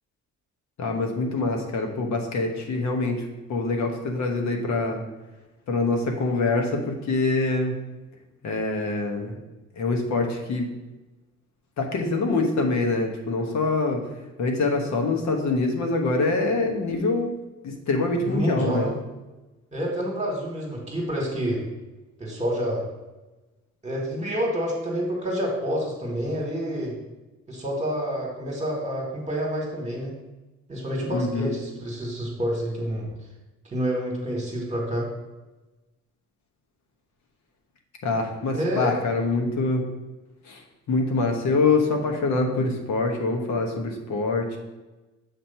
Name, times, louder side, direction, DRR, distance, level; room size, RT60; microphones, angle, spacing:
voice 1, 0.8-5.0 5.7-7.7 8.4-9.4 9.8-10.7 11.8-14.0 14.4-17.4 17.6-18.9 31.1-31.5 38.0-39.8 40.4-40.6 40.9-44.6, left 3 dB, 65° left, 3 dB, 1.2 m, -25 dB
voice 2, 18.2-18.9 19.7-21.6 22.2-22.8 23.8-26.9 27.5-30.1 30.7-33.0 33.6-35.1 38.5-39.0 41.6-41.7, equal, 25° right, -1 dB, 1.7 m, -28 dB
7.2 x 2.9 x 5.6 m, 1.1 s
cardioid pair, 90°, 30 cm